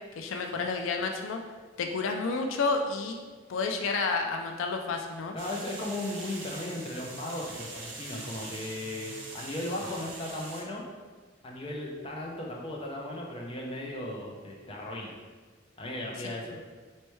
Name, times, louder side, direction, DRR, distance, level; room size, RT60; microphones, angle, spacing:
voice 1, 0.2-1.4 1.8-3.2 3.5-5.4 16.2-16.6, left 4 dB, 80° left, 4 dB, 0.4 m, -30 dB
voice 2, 5.3-10.8 11.4-15.2 15.8-16.6, left 1 dB, 30° left, -2 dB, 0.6 m, -36 dB
sound 1, 5.4-10.6, right 2 dB, 75° right, 0.9 m, -43 dB
4.4 x 3.2 x 3.1 m, 1.4 s
head